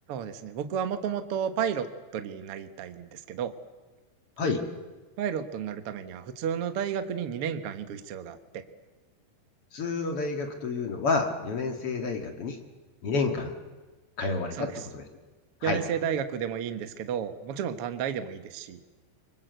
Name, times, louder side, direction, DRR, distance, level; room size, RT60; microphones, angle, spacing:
voice 1, 0.1-1.9 2.1-3.5 5.2-8.6 14.6-14.8 15.6-18.8, right 8 dB, 85° right, 9 dB, 1.2 m, -32 dB
voice 2, 9.7-12.6 13.0-13.6 14.2-15.1 15.6-15.8, left 4 dB, 45° left, 5 dB, 2.1 m, -29 dB
25.5 x 23.5 x 8.1 m, 1.2 s
omnidirectional pair, 4.8 m